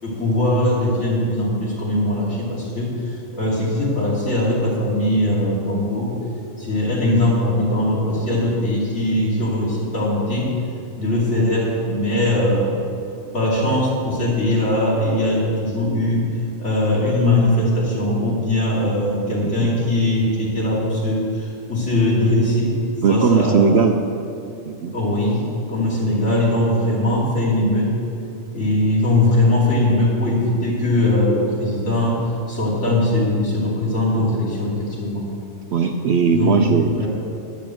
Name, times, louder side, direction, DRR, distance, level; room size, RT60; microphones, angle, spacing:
voice 1, 0.0-6.1 6.6-10.5 10.9-12.8 13.3-16.3 16.6-22.8 23.1-23.7 24.9-27.9 28.5-35.2 36.3-36.6 37.0-37.1, left 1 dB, 55° left, -6 dB, 3.2 m, -20 dB
voice 2, 23.0-24.0 24.7-24.9 35.7-37.1, right 5 dB, 65° right, 5 dB, 0.7 m, -18 dB
11.0 x 6.6 x 7.6 m, 2.6 s
omnidirectional pair, 1.5 m